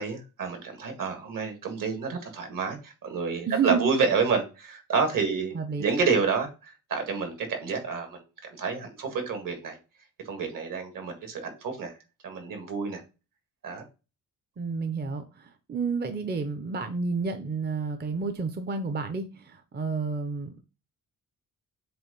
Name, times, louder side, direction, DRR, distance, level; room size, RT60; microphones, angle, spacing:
voice 1, 0.0-9.8 10.3-11.9 12.2-13.0 13.6-13.8, right 5 dB, 65° right, 1.9 m, -29 dB
voice 2, 3.5-3.9 5.5-5.8 14.6-20.6, right 5 dB, 30° right, 0.5 m, -30 dB
7.6 x 2.6 x 5.2 m
wide cardioid pair, 170°, 35 cm